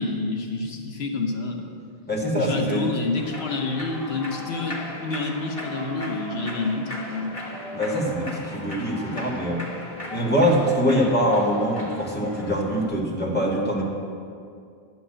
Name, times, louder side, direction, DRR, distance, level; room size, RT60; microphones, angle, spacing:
voice 1, 0.0-1.7 2.4-7.4, left 3 dB, 90° left, 3 dB, 1.2 m, -28 dB
voice 2, 2.1-2.9 7.7-9.6 10.1-13.8, equal, 10° left, -4 dB, 1.7 m, -23 dB
Human voice / Clapping / Cheering, 3.2-12.9, left 1 dB, 35° left, 1.2 m, -37 dB
11.0 x 6.0 x 7.6 m, 2.4 s
omnidirectional pair, 1.0 m